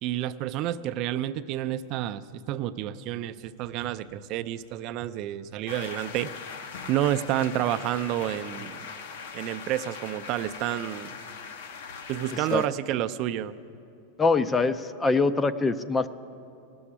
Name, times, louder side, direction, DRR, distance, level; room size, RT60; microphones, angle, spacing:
voice 1, 0.0-6.3 6.9-8.9 9.3-11.2 12.1-13.6, right 12 dB, 45° right, 12 dB, 0.4 m, -29 dB
sound 1, 5.7-12.7, left 5 dB, 75° left, 1.0 m, -40 dB
voice 2, 14.2-16.1, left 3 dB, 15° left, 13 dB, 0.4 m, -23 dB
17.0 x 7.0 x 9.9 m, 2.6 s
supercardioid pair, 140°, 0 cm